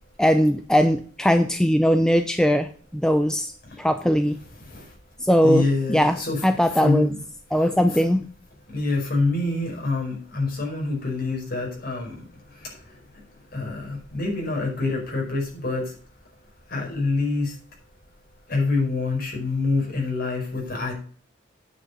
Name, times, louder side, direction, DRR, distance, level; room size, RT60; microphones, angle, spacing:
voice 1, 0.2-3.5 3.8-4.4 5.2-7.1 7.5-8.2, equal, 5° left, 7 dB, 0.5 m, -20 dB
voice 2, 5.4-6.4 6.8-7.1 8.7-12.2 13.5-15.9 16.7-17.5 18.5-20.9, left 3 dB, 50° left, -1 dB, 5.1 m, -25 dB
9.3 x 6.1 x 6.7 m, 0.43 s
head